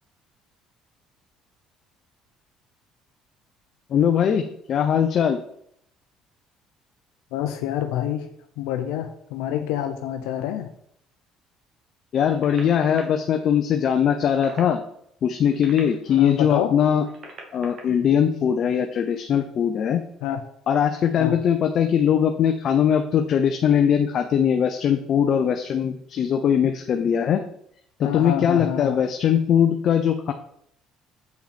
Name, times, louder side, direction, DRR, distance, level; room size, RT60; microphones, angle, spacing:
voice 1, 3.9-5.4 12.1-14.8 15.2-17.0 17.5-20.0 20.7-27.4 28.0-30.3, left 8 dB, 50° left, 7 dB, 0.7 m, -21 dB
voice 2, 7.3-8.3 8.6-10.7 16.2-16.7 20.2-20.4 21.2-21.4 28.0-29.0, left 11 dB, 90° left, 6 dB, 0.6 m, -27 dB
sound 1, 12.3-13.0 14.1-14.7 15.4-16.3 17.0-17.8 19.0-19.2, right 3 dB, 50° right, 2.2 m, -42 dB
7.9 x 5.7 x 4.2 m, 0.70 s
cardioid pair, 105°, 0 cm